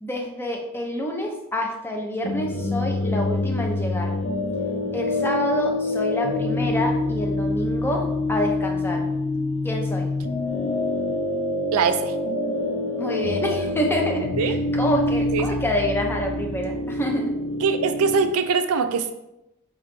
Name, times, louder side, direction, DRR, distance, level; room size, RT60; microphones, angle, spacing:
voice 1, 0.0-4.2 4.9-9.1 9.6-10.1 13.0-17.3, equal, 10° left, 2 dB, 0.5 m, -27 dB
sound 1, 2.2-18.3, left 2 dB, 55° left, 0.7 m, -26 dB
voice 2, 11.7-12.2 14.4-14.6 15.3-15.5 17.6-19.1, right 5 dB, 75° right, 9 dB, 0.4 m, -22 dB
4.8 x 3.3 x 3.1 m, 0.88 s
head